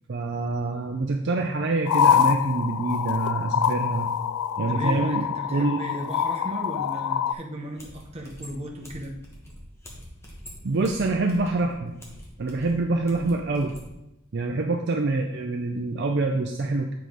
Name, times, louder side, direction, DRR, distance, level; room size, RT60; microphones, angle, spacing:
voice 1, 0.1-4.1 4.6-5.8 10.6-11.9 12.4-13.7 14.3-16.9, right 3 dB, 50° right, 3 dB, 0.5 m, -26 dB
sound 1, 1.9-7.3, left 8 dB, 90° left, 0.3 m, -25 dB
voice 2, 4.7-9.1, right 1 dB, 30° right, 1 dB, 0.9 m, -36 dB
sound 2, 7.8-13.9, equal, 10° left, 1.2 m, -45 dB
7.6 x 4.8 x 3.9 m, 0.92 s
head